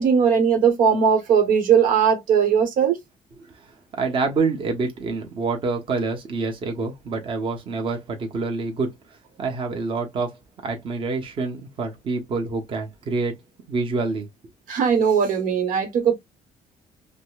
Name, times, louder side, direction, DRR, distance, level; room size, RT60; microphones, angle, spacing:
voice 1, 0.0-3.0 14.7-16.1, right 7 dB, 80° right, 1.1 m, -19 dB
voice 2, 3.6-8.9 9.4-10.4 10.6-13.3 13.7-14.3, right 3 dB, 40° right, 1.0 m, -27 dB
5.1 x 2.1 x 2.3 m
cardioid pair, 160°, 14 cm